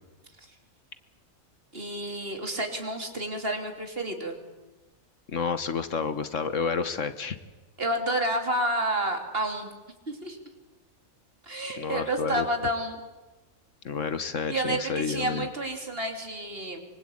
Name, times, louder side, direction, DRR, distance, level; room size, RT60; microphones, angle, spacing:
voice 1, 1.7-4.4 7.8-9.7 10.1-10.4 11.4-13.0 14.5-16.8, right 1 dB, 40° right, 4 dB, 3.5 m, -30 dB
voice 2, 5.3-7.4 11.8-12.5 13.8-15.5, left 5 dB, 60° left, 12 dB, 1.5 m, -30 dB
25.5 x 24.0 x 8.7 m, 1.1 s
omnidirectional pair, 1.5 m